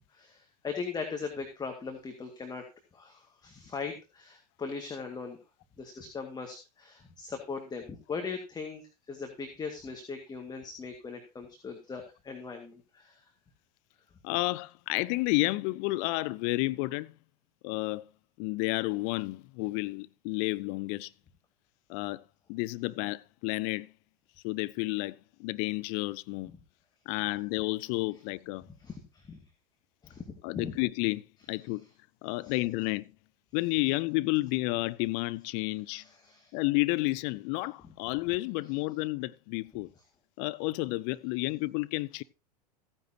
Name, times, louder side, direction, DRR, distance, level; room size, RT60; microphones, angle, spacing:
voice 1, 0.1-2.6 2.9-5.4 5.8-13.2 28.8-29.4 30.0-30.2 30.6-30.7 32.4-32.5 35.9-36.5, left 5 dB, 20° left, 2.0 m, -39 dB
voice 2, 14.2-17.1 17.6-18.0 18.4-21.1 21.9-22.2 22.5-23.9 24.4-26.5 27.1-28.6 30.4-31.9 32.2-33.1 33.5-36.0 36.5-39.9 40.4-42.2, left 22 dB, 50° left, 0.6 m, -31 dB
15.0 x 9.8 x 2.8 m
figure-of-eight pair, 85°, 21 cm